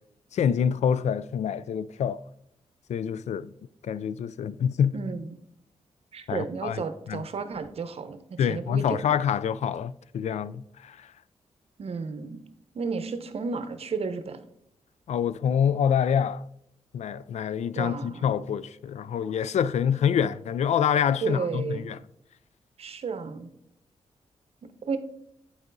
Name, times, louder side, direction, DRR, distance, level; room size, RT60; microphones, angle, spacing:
voice 1, 0.3-2.2 2.9-3.5 3.8-5.0 6.3-6.8 7.1-7.2 8.4-11.1 15.1-16.5 16.9-22.0, left 8 dB, 75° left, 0.4 m, -26 dB
voice 2, 4.9-5.4 6.1-9.2 11.8-12.4 12.7-14.4 17.8-18.3 21.2-21.9 22.8-23.5 24.6-25.0, right 5 dB, 60° right, 0.8 m, -33 dB
8.0 x 4.9 x 3.9 m
cardioid pair, 85°, 12 cm